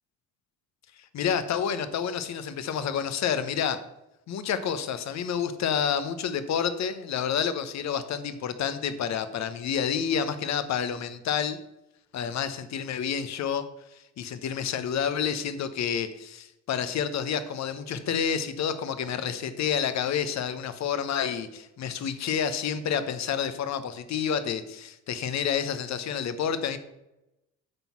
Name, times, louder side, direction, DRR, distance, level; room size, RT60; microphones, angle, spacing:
voice 1, 1.0-3.8 4.3-11.6 12.1-13.6 13.9-26.8, left 7 dB, 50° left, 12 dB, 0.9 m, -29 dB
9.0 x 4.0 x 5.7 m, 0.93 s
hypercardioid pair, 65°, 34 cm